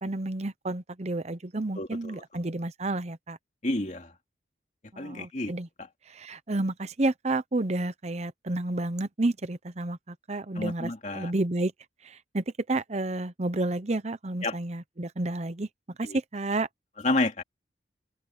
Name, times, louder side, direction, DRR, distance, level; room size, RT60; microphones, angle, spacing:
voice 1, 0.0-3.4 4.9-5.7 6.1-11.7 12.0-15.7 16.0-16.7, right 2 dB, 40° right, 0.8 m, -30 dB
voice 2, 1.7-2.2 3.6-4.1 5.0-5.5 5.8-5.9 10.5-11.3 14.4-14.6 16.0-16.2 17.0-17.4, left 2 dB, 40° left, 2.5 m, -30 dB
head